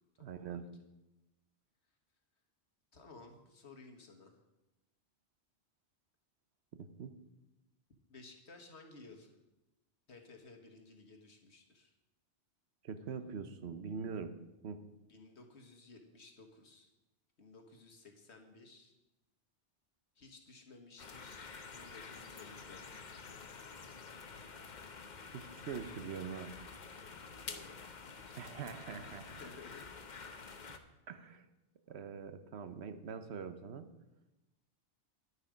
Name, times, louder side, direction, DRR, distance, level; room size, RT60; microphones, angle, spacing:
voice 1, 0.2-0.7 6.7-7.1 12.8-14.4 14.6-14.8 25.3-26.6 28.4-29.3 31.1-31.5 31.9-33.9, right 6 dB, 70° right, 10 dB, 1.1 m, -43 dB
voice 2, 2.9-4.4 8.1-9.3 10.1-11.9 15.1-16.9 17.4-18.9 20.1-23.1 27.4-27.8 28.2-30.0, left 3 dB, 70° left, 4 dB, 1.7 m, -56 dB
sound 1, 21.0-30.8, left 5 dB, 45° left, 0.9 m, -49 dB
11.0 x 9.8 x 5.0 m, 0.98 s
omnidirectional pair, 1.2 m